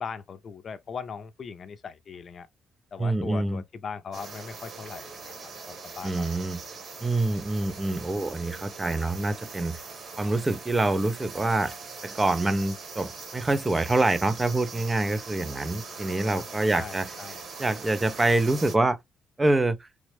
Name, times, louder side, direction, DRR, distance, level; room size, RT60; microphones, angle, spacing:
voice 1, 0.0-2.5 2.9-5.3 5.7-6.3 16.2-16.4 16.7-17.5, left 6 dB, 50° left, 0.5 m, -39 dB
voice 2, 3.0-3.6 6.0-6.6 7.0-9.8 10.2-11.7 12.0-17.1 17.6-19.0 19.4-19.9, right 2 dB, 20° right, 0.4 m, -26 dB
sound 1, 4.1-18.8, right 4 dB, 60° right, 1.3 m, -41 dB
3.4 x 2.0 x 3.2 m
cardioid pair, 90°, 0 cm